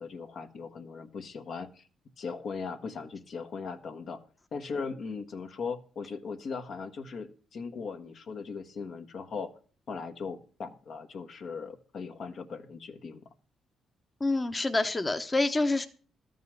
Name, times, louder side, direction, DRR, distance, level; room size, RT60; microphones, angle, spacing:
voice 1, 0.0-1.8 2.2-4.2 4.5-9.5 9.9-13.2, left 5 dB, 60° left, 7 dB, 1.2 m, -38 dB
voice 2, 14.2-15.9, left 2 dB, 20° left, 7 dB, 0.9 m, -27 dB
13.0 x 5.5 x 7.7 m, 0.40 s
cardioid pair, 90°, 0 cm